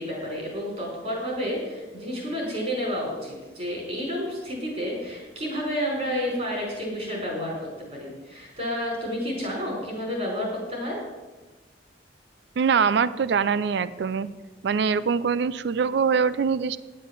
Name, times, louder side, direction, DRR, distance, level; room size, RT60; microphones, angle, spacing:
voice 1, 0.0-7.5 7.9-11.0, equal, 35° right, -2 dB, 4.8 m, -30 dB
voice 2, 12.6-14.3 14.6-16.8, right 6 dB, 65° right, 16 dB, 0.4 m, -23 dB
10.5 x 7.3 x 7.3 m, 1.2 s
head